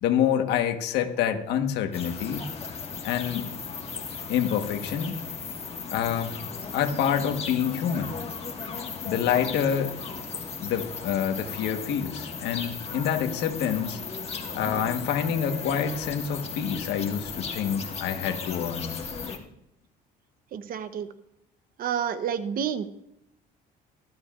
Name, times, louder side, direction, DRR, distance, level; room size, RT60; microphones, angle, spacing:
voice 1, 0.0-2.4 3.0-3.5 4.3-5.2 5.9-6.4 6.7-8.2 9.0-9.9 10.6-14.0 14.5-19.0, left 8 dB, 80° left, 6 dB, 1.4 m, -27 dB
sound 1, 1.9-19.4, left 5 dB, 35° left, 1.8 m, -36 dB
voice 2, 20.5-21.1 21.8-22.9, right 8 dB, 60° right, 11 dB, 1.0 m, -29 dB
19.0 x 12.5 x 2.5 m, 0.79 s
cardioid pair, 110°, 17 cm